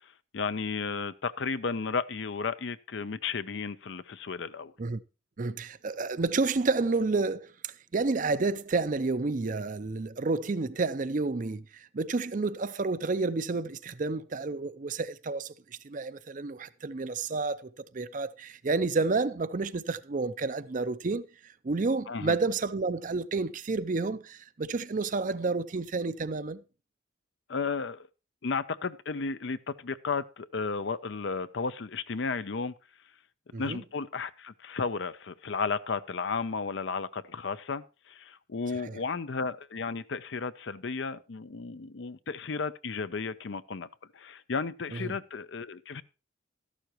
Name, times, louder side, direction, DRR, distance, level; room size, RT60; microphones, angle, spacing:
voice 1, 0.3-4.7 22.1-22.4 27.5-28.1 28.4-32.7 33.6-43.9 44.1-46.0, left 4 dB, 60° left, 0.6 m, -33 dB
voice 2, 5.4-15.5 15.8-21.3 21.6-26.6 33.5-33.8 38.7-39.0 44.9-45.1, right 3 dB, 40° right, 0.5 m, -30 dB
13.0 x 11.5 x 3.0 m
head